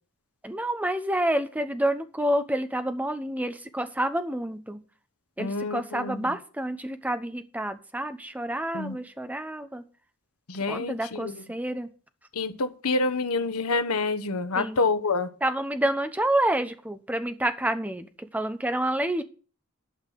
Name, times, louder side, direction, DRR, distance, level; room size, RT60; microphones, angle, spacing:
voice 1, 0.4-4.8 5.4-9.8 10.7-11.9 14.5-14.8 15.4-19.2, right 1 dB, 5° right, 1.0 m, -28 dB
voice 2, 5.4-6.2 8.7-9.0 10.5-11.4 12.3-15.3, left 3 dB, 80° left, 1.2 m, -27 dB
11.5 x 5.9 x 8.4 m
head